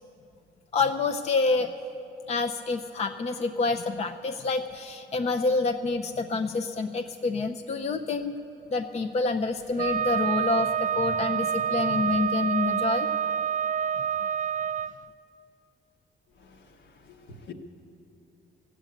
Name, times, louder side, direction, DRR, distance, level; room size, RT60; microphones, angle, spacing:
voice 1, 0.7-1.7 2.3-8.4 8.7-13.1, left 3 dB, 35° left, 0.5 m, -27 dB
Wind instrument woodwind instrument, 9.8-14.9, right 8 dB, 45° right, 0.5 m, -27 dB
voice 2, 16.3-17.5, left 5 dB, 65° left, 1.3 m, -48 dB
14.5 x 8.2 x 9.1 m
cardioid pair, 90°, 20 cm